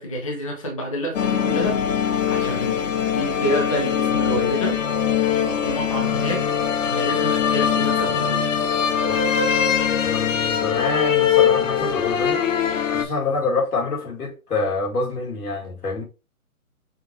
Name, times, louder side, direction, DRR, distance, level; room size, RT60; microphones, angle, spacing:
voice 1, 0.0-4.8 5.6-6.5 6.8-8.5, equal, 25° left, 0.5 m, -28 dB
sound 1, 1.1-13.0, left 8 dB, 60° left, 0.7 m, -22 dB
voice 2, 9.1-9.4 10.0-12.4 12.8-16.0, left 3 dB, 85° left, 2.0 m, -26 dB
5.8 x 2.4 x 2.7 m
hypercardioid pair, 160°, 44 cm